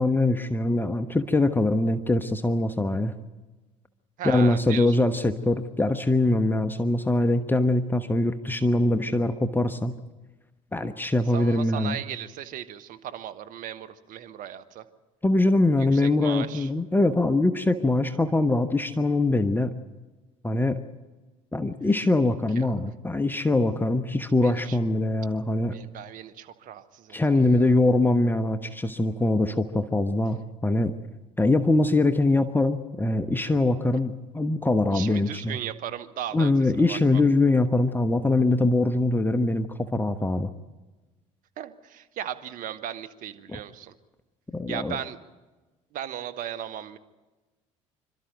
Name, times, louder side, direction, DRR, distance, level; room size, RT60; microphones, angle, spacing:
voice 1, 0.0-3.1 4.2-9.9 10.7-12.0 15.2-19.7 20.4-20.8 21.5-25.8 27.1-30.9 31.4-35.6 36.3-40.5 43.5-43.6 44.5-45.0, left 2 dB, 10° left, 9 dB, 1.2 m, -23 dB
voice 2, 4.2-5.0 11.3-14.8 15.9-16.7 22.6-22.7 24.4-24.8 25.7-27.7 34.9-36.5 36.8-37.2 41.6-43.9 44.7-45.2 45.9-47.0, right 10 dB, 55° right, 10 dB, 1.5 m, -37 dB
27.5 x 13.0 x 9.2 m, 1.2 s
hypercardioid pair, 60°, 16 cm